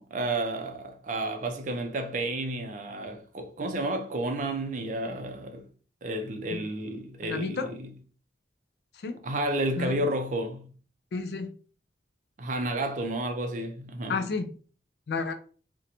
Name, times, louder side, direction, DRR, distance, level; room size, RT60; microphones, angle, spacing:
voice 1, 0.0-5.6 6.0-7.9 9.2-10.7 12.4-14.2, right 1 dB, 45° right, 0.4 m, -31 dB
voice 2, 7.2-7.7 8.9-9.2 9.8-9.9 11.1-11.5 14.1-14.5 15.1-15.3, left 4 dB, 60° left, 0.3 m, -31 dB
2.5 x 2.1 x 2.8 m
head